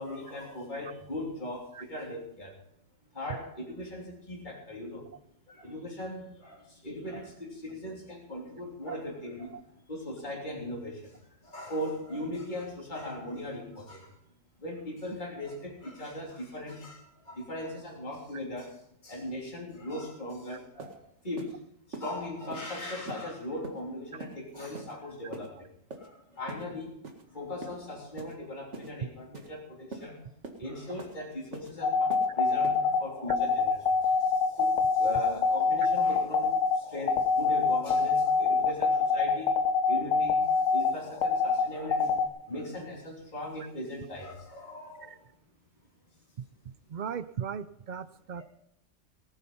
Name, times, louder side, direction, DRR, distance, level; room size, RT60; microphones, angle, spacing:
voice 1, 0.0-2.6 3.1-5.1 5.5-9.6 9.9-14.1 14.6-21.0 21.2-21.6 21.9-25.7 26.0-27.0 27.3-30.3 30.6-39.5 39.9-42.1 42.5-45.3 48.4-48.5, left 1 dB, 35° left, -2 dB, 3.4 m, -39 dB
sound 1, 20.3-20.4 20.8-21.0 21.4-21.5 21.9-22.1 22.5-22.7 23.1-23.2 23.6-23.8 24.2-24.4 24.7-24.9 25.3-25.5 25.9-26.1 26.5-26.6 27.0-27.2 27.6-27.8 28.2-28.4 28.7-28.9 29.3-29.5 29.9-30.1 30.4-30.6 31.0-31.2 31.5-31.7 32.1-32.3 32.6-32.8, right 3 dB, 65° right, 2.2 m, -42 dB
sound 2, 31.8-42.2, left 5 dB, 85° left, 1.6 m, -25 dB
voice 2, 46.9-48.4, right 7 dB, 50° right, 15 dB, 0.6 m, -37 dB
18.5 x 9.2 x 5.5 m, 0.74 s
omnidirectional pair, 1.3 m